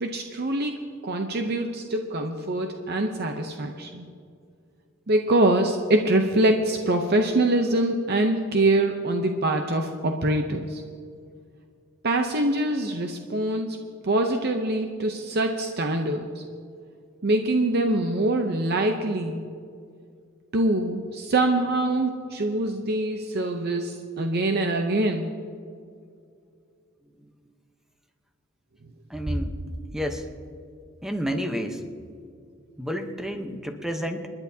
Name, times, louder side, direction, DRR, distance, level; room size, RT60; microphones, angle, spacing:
voice 1, 0.0-4.0 5.1-10.8 12.0-13.8 14.0-16.4 17.2-19.5 20.5-25.3, right 1 dB, 55° right, 4 dB, 0.7 m, -24 dB
voice 2, 29.1-29.6 29.9-30.3 31.0-31.8 32.8-34.3, equal, ahead, 5 dB, 0.9 m, -30 dB
29.0 x 10.5 x 2.8 m, 2.3 s
head